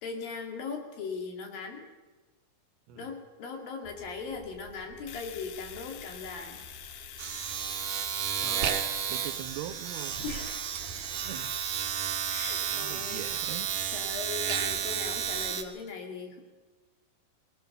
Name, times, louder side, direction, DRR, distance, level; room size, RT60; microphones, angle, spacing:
voice 1, 0.0-1.8 3.0-6.6 10.2-10.7 12.3-13.3 13.9-16.4, left 5 dB, 65° left, 3 dB, 4.1 m, -39 dB
Domestic sounds home sounds, 3.9-4.1 4.4-15.6, right 8 dB, 60° right, 2.6 m, -32 dB
Domestic sounds home sounds 2, 5.1-12.9, left 11 dB, 80° left, 1.8 m, -48 dB
voice 2, 8.4-8.8 9.1-10.2 11.2-11.6 12.7-13.7, right 11 dB, 80° right, 9 dB, 2.9 m, -41 dB
21.0 x 18.5 x 6.7 m, 1.2 s
omnidirectional pair, 4.6 m